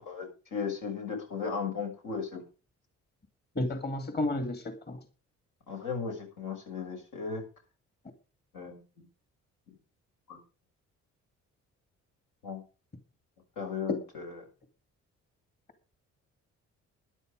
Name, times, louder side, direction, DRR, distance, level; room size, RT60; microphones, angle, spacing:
voice 1, 0.0-2.4 5.7-7.4 8.5-8.8 10.3-10.4 12.4-12.6 13.6-14.4, left 6 dB, 85° left, 2 dB, 6.5 m, -36 dB
voice 2, 3.6-5.0, left 1 dB, 35° left, 7 dB, 2.5 m, -32 dB
13.5 x 10.5 x 5.1 m, 0.34 s
cardioid pair, 90°, 30 cm